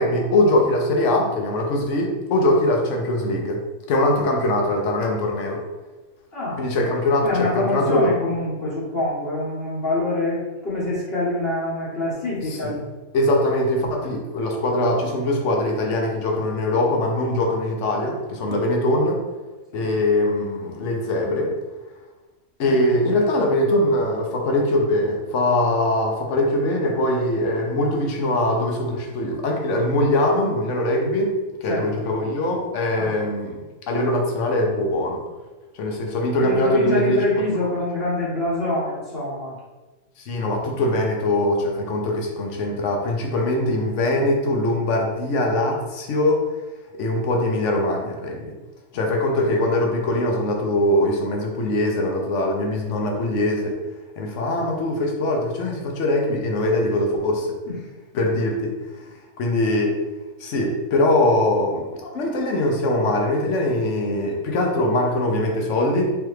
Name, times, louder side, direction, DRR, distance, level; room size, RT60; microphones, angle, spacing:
voice 1, 0.0-3.6 3.9-5.6 6.6-8.1 12.5-12.8 13.1-19.2 19.7-21.5 22.6-35.2 35.7-37.2 40.2-46.4 47.0-48.5 48.9-53.8 54.2-57.6 58.1-58.7 59.4-59.9 60.4-66.1, left 1 dB, 75° left, 1 dB, 1.1 m, -22 dB
voice 2, 6.3-6.6 7.2-12.8 13.9-14.2 19.7-19.9 22.6-23.0 31.6-32.1 32.9-33.1 36.4-39.6 48.9-49.5 57.7-57.9 58.1-58.3, left 2 dB, 55° left, -8 dB, 1.2 m, -26 dB
3.4 x 3.4 x 3.1 m, 1.2 s
omnidirectional pair, 1.3 m